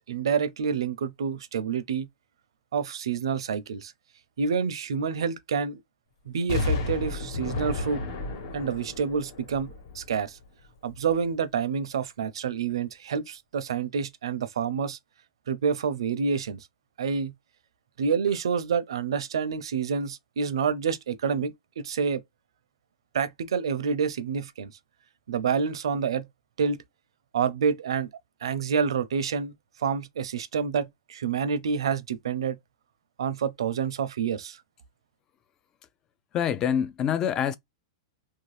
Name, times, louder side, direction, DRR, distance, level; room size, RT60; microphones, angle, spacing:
voice 1, 0.1-2.1 2.7-3.9 4.4-5.8 6.3-8.0 8.5-10.4 10.8-15.0 15.5-16.6 17.0-17.3 18.0-21.5 21.8-22.2 23.1-24.7 25.3-26.3 26.6-26.8 27.3-28.1 28.4-29.5 29.8-32.6 33.2-34.6, right 6 dB, 85° right, 0.6 m, -28 dB
Explosion, 6.5-10.4 10.9-11.0, left 3 dB, 60° left, 1.3 m, -32 dB
voice 2, 36.3-37.6, left 8 dB, 25° left, 0.4 m, -25 dB
2.8 x 2.2 x 3.1 m
supercardioid pair, 150°, 3 cm